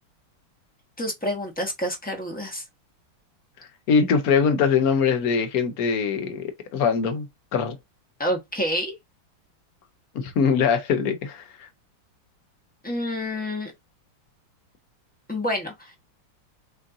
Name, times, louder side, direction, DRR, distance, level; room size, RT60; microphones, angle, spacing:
voice 1, 1.0-2.6 8.2-8.9 12.8-13.7 15.3-15.9, equal, 5° left, 0.7 m, -28 dB
voice 2, 3.9-7.3 7.5-7.8 10.1-11.4, left 6 dB, 65° left, 0.9 m, -22 dB
6.3 x 2.7 x 2.6 m
omnidirectional pair, 2.4 m